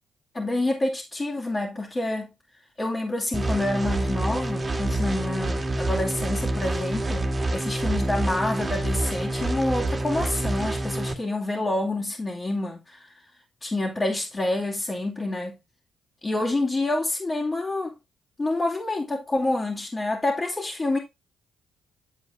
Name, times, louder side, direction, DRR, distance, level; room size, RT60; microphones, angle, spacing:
voice 1, 0.3-2.3 2.8-13.1 13.6-15.6 16.2-17.9 18.4-21.0, left 2 dB, 30° left, 2.8 m, -27 dB
sound 1, 3.3-11.1, right 1 dB, 30° right, 1.9 m, -27 dB
9.1 x 8.0 x 2.7 m
hypercardioid pair, 45°, 0 cm